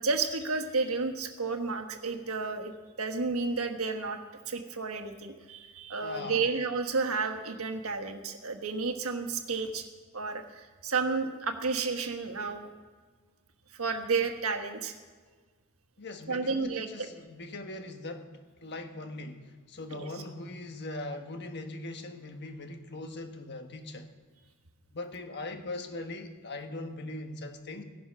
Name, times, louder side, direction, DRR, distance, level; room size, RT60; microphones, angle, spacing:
voice 1, 0.0-2.7 3.0-4.2 4.5-9.8 10.1-12.7 13.7-14.9 16.3-17.1 19.9-20.1, right 4 dB, 75° right, 6 dB, 1.4 m, -31 dB
voice 2, 6.0-6.5 16.0-18.3 18.6-24.1 24.9-27.8, left 2 dB, 50° left, 6 dB, 1.3 m, -40 dB
16.0 x 11.0 x 5.8 m, 1.5 s
head